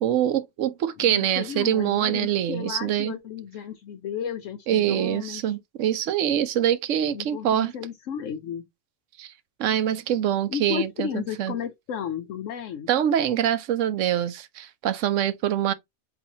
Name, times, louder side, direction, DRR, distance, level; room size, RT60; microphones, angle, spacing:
voice 1, 0.0-3.1 4.7-7.7 9.2-9.3 9.6-11.5 12.9-15.7, right 10 dB, 80° right, 1.0 m, -24 dB
voice 2, 1.0-5.5 7.1-8.6 10.5-12.9, left 8 dB, 80° left, 1.0 m, -33 dB
4.4 x 3.9 x 2.8 m
omnidirectional pair, 1.3 m